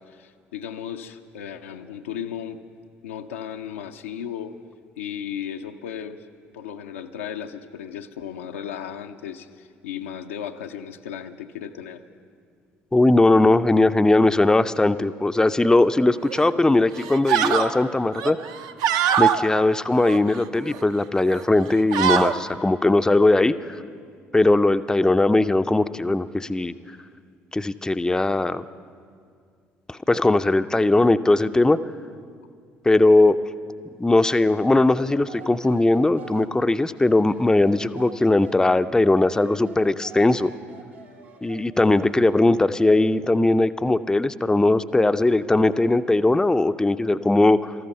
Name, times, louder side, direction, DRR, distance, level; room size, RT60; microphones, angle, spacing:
voice 1, 0.0-2.6 3.0-4.5 5.0-6.3 6.5-12.0, left 9 dB, 75° left, 6 dB, 0.5 m, -35 dB
voice 2, 12.9-18.4 19.2-23.8 24.3-26.7 27.5-28.6 29.9-31.8 32.8-33.4 34.0-40.5 41.4-47.7, left 2 dB, 10° left, 11 dB, 0.5 m, -19 dB
sound 1, 16.3-16.5 17.0-17.7 18.1-19.4 19.9-20.8 21.2-21.4 21.7-22.3, right 9 dB, 60° right, 0.6 m, -23 dB
sound 2, 34.2-38.7 39.1-42.3, right 6 dB, 75° right, 1.3 m, -46 dB
18.5 x 14.0 x 5.4 m, 2.2 s
figure-of-eight pair, 50°, 7 cm